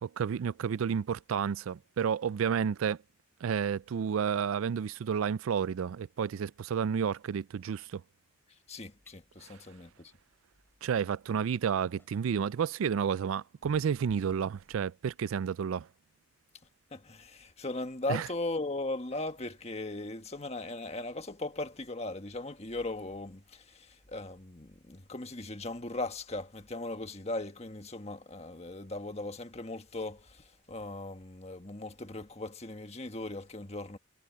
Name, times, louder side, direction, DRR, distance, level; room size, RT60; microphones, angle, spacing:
voice 1, 0.0-3.0 3.4-8.0 9.4-9.6 10.8-15.9 18.1-18.3, right 7 dB, 80° right, 0.4 m, -31 dB
voice 2, 8.7-10.1 16.9-34.0, left 2 dB, 30° left, 1.5 m, -38 dB
sound 1, 9.1-9.2 11.1-11.2 11.8-12.8 13.6-14.9, equal, 10° left, 4.4 m, -58 dB
head